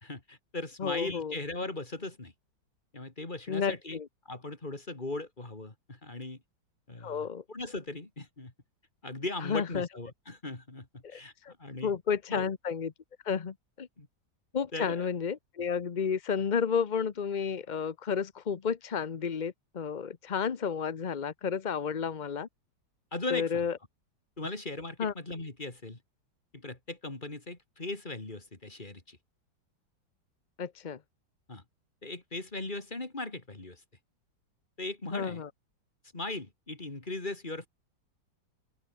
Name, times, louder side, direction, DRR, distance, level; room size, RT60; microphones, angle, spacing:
voice 1, 0.0-2.3 2.9-4.0 4.2-6.4 6.9-8.5 9.0-11.9 12.3-12.5 14.0-14.1 14.7-15.1 23.1-23.7 24.4-26.0 26.5-29.2 31.5-31.6 32.0-33.8 34.8-35.4 36.1-37.7, left 2 dB, 25° left, 3.3 m, -38 dB
voice 2, 0.8-1.3 3.5-4.1 7.0-7.4 9.4-9.9 11.0-11.5 11.8-12.9 13.2-13.9 14.5-22.5 23.3-23.7 25.0-25.1 30.6-31.0 35.1-35.5, left 6 dB, 50° left, 0.5 m, -31 dB
omnidirectional pair, 2.0 m